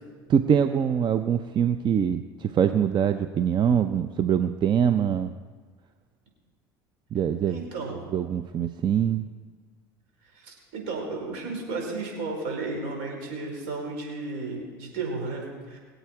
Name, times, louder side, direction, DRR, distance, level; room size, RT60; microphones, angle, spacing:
voice 1, 0.3-5.3 7.1-7.6 8.1-9.2, right 8 dB, 40° right, 9 dB, 0.7 m, -23 dB
voice 2, 7.5-8.0 10.3-15.8, right 3 dB, 70° right, 0 dB, 4.9 m, -33 dB
23.5 x 8.2 x 4.8 m, 1.5 s
hypercardioid pair, 75°, 12 cm